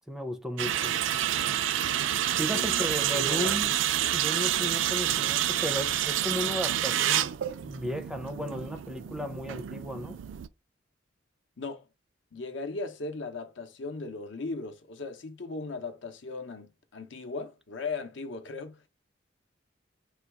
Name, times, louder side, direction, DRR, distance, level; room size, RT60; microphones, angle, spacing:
voice 1, 0.1-0.9 2.4-3.7 4.1-7.4 7.6-10.2, equal, ahead, 0.4 m, -34 dB
sound 1, 0.6-10.5, right 11 dB, 85° right, 0.4 m, -28 dB
voice 2, 2.4-2.8 3.1-3.5 11.6-11.9 12.3-18.9, left 3 dB, 75° left, 0.7 m, -37 dB
4.0 x 2.3 x 4.6 m
head